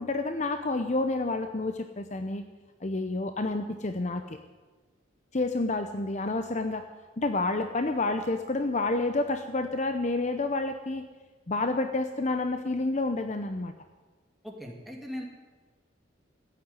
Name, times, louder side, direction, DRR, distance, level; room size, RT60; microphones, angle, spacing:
voice 1, 0.0-2.4 2.8-4.4 5.3-6.8 7.2-11.1 11.5-13.7, left 2 dB, 35° left, 8 dB, 0.7 m, -29 dB
voice 2, 14.4-15.2, equal, ahead, -1 dB, 2.5 m, -39 dB
15.0 x 9.4 x 9.6 m, 1.3 s
head